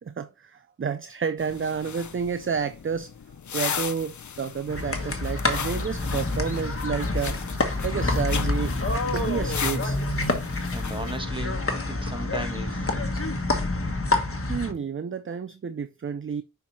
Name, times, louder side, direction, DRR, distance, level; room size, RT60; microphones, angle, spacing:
voice 1, 0.0-3.1 3.5-7.4 7.8-8.8 9.1-10.0 14.5-16.4, right 6 dB, 40° right, 0.4 m, -30 dB
sound 1, 1.4-11.2, left 7 dB, 60° left, 0.6 m, -37 dB
sound 2, 4.7-14.7, left 2 dB, 40° left, 1.3 m, -27 dB
voice 2, 10.7-12.9, right 1 dB, 15° right, 1.5 m, -36 dB
5.6 x 4.5 x 4.1 m
wide cardioid pair, 50°, 34 cm